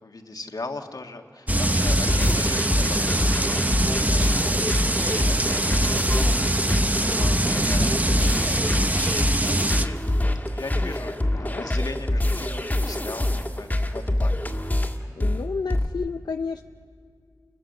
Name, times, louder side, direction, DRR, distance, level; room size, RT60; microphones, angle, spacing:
voice 1, 0.0-6.4 6.8-8.0 8.3-10.0 10.5-14.4, left 3 dB, 65° left, 4 dB, 1.6 m, -39 dB
sound 1, 1.5-15.9, left 1 dB, 25° left, 1.8 m, -25 dB
sound 2, 1.5-9.9, right 1 dB, 20° right, 0.8 m, -23 dB
voice 2, 4.5-5.0 11.3-11.6 15.2-16.6, left 5 dB, 85° left, 7 dB, 0.5 m, -32 dB
29.0 x 22.0 x 6.6 m, 2.3 s
wide cardioid pair, 70°, 7 cm